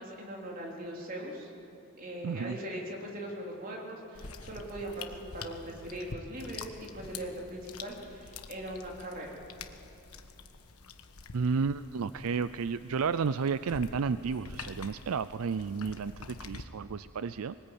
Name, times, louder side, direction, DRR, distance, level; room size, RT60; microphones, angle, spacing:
voice 1, 0.0-1.5 2.0-9.4, right 1 dB, 40° right, -1 dB, 3.8 m, -40 dB
voice 2, 2.2-2.6 11.3-17.5, right 5 dB, 75° right, 14 dB, 0.4 m, -32 dB
sound 1, 4.1-16.6, left 4 dB, 80° left, 1.3 m, -47 dB
23.0 x 19.5 x 9.0 m, 2.9 s
head